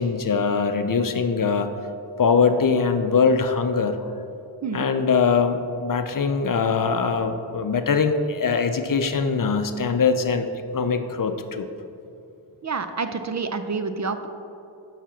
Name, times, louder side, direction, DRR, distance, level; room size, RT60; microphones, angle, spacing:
voice 1, 0.0-1.7 2.2-4.2 4.7-10.5 10.7-11.7, left 5 dB, 45° left, 8 dB, 0.6 m, -22 dB
voice 2, 12.6-14.3, right 4 dB, 40° right, 8 dB, 0.5 m, -28 dB
7.3 x 5.7 x 5.8 m, 2.7 s
wide cardioid pair, 75°, 45 cm